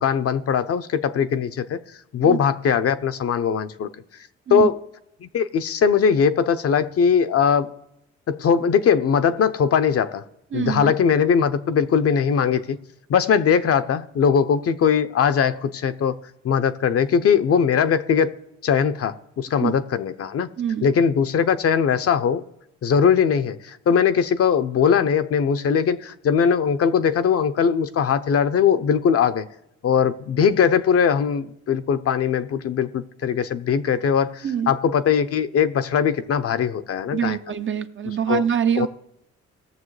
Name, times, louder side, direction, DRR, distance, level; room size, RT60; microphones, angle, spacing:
voice 1, 0.0-1.8 2.1-3.9 4.5-4.8 5.2-7.7 8.3-10.2 10.5-12.8 13.1-16.1 16.4-18.3 18.6-20.5 20.8-22.4 22.8-29.5 29.8-37.4 38.3-38.4 38.8-38.9, left 7 dB, 50° left, 0.6 m, -20 dB
voice 2, 10.5-10.9 19.6-19.7 20.6-20.9 34.4-34.7 37.1-38.9, right 8 dB, 40° right, 0.6 m, -24 dB
18.5 x 6.8 x 3.2 m
cardioid pair, 90°, 30 cm